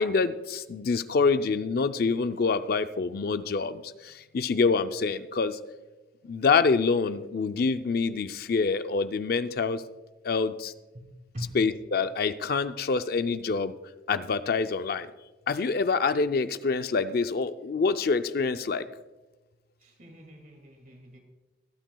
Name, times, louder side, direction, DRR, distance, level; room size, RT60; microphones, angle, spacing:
voice 1, 0.0-5.6 6.2-9.8 10.2-10.7 11.5-13.7 14.1-15.1 15.5-18.9, left 4 dB, 55° left, 11 dB, 0.4 m, -26 dB
voice 2, 19.8-21.2, equal, 45° right, 3 dB, 2.2 m, -42 dB
23.0 x 9.1 x 2.3 m, 1.1 s
head